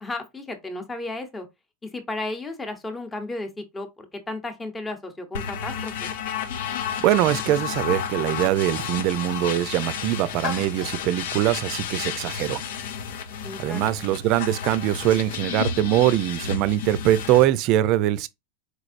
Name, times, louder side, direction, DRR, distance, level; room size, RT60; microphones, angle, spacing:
voice 1, 0.0-1.5 1.8-6.1 13.4-13.9, left 2 dB, 15° left, 0.8 m, -34 dB
sound 1, 5.3-17.4, left 7 dB, 75° left, 0.6 m, -32 dB
voice 2, 7.0-12.6 13.6-18.3, right 13 dB, 50° right, 0.4 m, -22 dB
sound 2, 9.1-16.8, left 6 dB, 50° left, 1.1 m, -43 dB
4.3 x 3.2 x 2.5 m
supercardioid pair, 120°, 0 cm